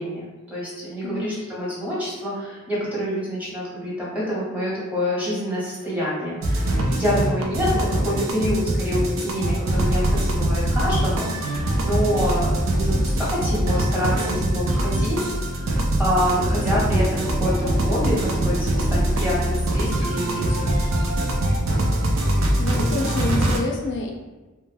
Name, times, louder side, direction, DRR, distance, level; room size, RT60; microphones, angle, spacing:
voice 1, 0.0-15.2 15.5-20.8, equal, 5° right, -8 dB, 0.9 m, -27 dB
voice 2, 1.0-1.4 22.6-24.1, left 3 dB, 55° left, 1 dB, 0.3 m, -28 dB
sound 1, 6.4-23.6, right 1 dB, 70° right, 0.4 m, -23 dB
Bowed string instrument, 15.9-20.2, right 1 dB, 45° right, 0.9 m, -37 dB
2.2 x 2.1 x 3.2 m, 1.2 s
head